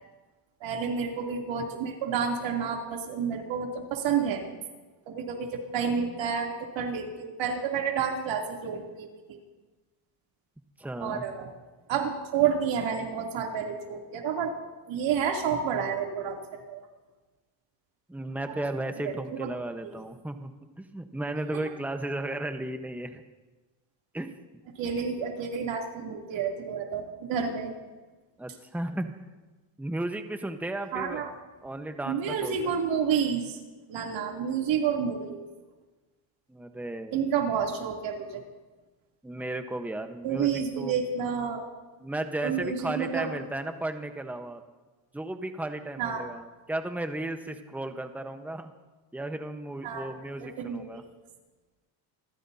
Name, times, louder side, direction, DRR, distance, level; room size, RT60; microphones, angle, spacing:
voice 1, 0.6-4.4 5.1-9.4 11.0-11.5 11.9-14.5 14.9-16.4 16.7-16.8 18.5-18.6 19.0-19.1 24.8-27.7 30.9-31.3 32.1-33.6 33.9-35.5 37.1-38.4 40.2-41.7 42.4-43.3 46.0-46.3 49.8-50.1 50.4-51.0, right 7 dB, 65° right, 0 dB, 3.2 m, -30 dB
voice 2, 10.8-11.2 18.1-20.5 20.8-23.2 24.1-24.3 28.4-29.2 29.8-31.3 31.6-32.8 36.5-37.2 39.2-41.0 42.0-44.6 45.1-48.7 49.1-51.0, right 1 dB, 5° right, 6 dB, 1.1 m, -34 dB
27.0 x 14.5 x 2.8 m, 1.2 s
cardioid pair, 110°, 48 cm